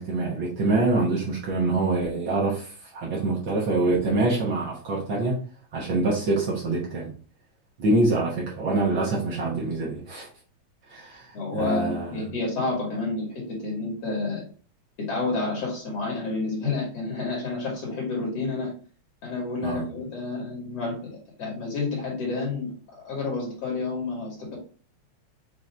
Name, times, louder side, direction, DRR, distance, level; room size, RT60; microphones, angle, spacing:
voice 1, 0.0-5.4 5.7-7.1 7.8-10.3 10.9-12.2 19.6-19.9, right 2 dB, 65° right, -3 dB, 1.2 m, -25 dB
voice 2, 11.3-14.5 15.0-18.7 19.2-24.6, left 3 dB, 55° left, -3 dB, 2.3 m, -30 dB
5.8 x 2.6 x 3.3 m, 0.40 s
omnidirectional pair, 3.5 m